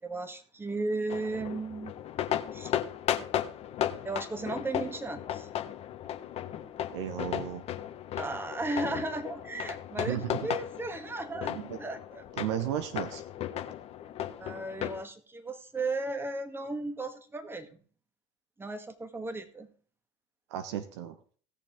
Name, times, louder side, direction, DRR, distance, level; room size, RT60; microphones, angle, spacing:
voice 1, 0.0-1.9 2.5-2.7 4.0-5.5 8.2-12.2 14.4-17.8 18.6-19.7, right 2 dB, 15° right, 8 dB, 1.9 m, -35 dB
sound 1, 1.1-15.0, left 11 dB, 45° left, 1.3 m, -35 dB
voice 2, 6.9-7.6 10.0-10.4 11.5-11.8 12.4-13.2 20.5-21.2, right 11 dB, 70° right, 9 dB, 1.2 m, -34 dB
17.5 x 6.8 x 3.7 m, 0.43 s
hypercardioid pair, 75°, 15 cm